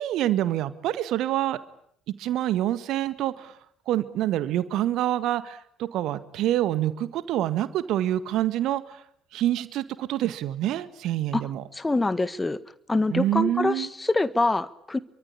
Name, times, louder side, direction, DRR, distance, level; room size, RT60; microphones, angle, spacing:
voice 1, 0.0-1.6 2.2-3.6 3.9-9.0 9.3-11.6 13.1-13.9, right 13 dB, 55° right, 14 dB, 1.7 m, -26 dB
voice 2, 11.7-12.6 12.9-15.0, left 2 dB, 15° left, 15 dB, 1.6 m, -25 dB
27.0 x 24.5 x 8.6 m, 0.68 s
figure-of-eight pair, 50°, 0 cm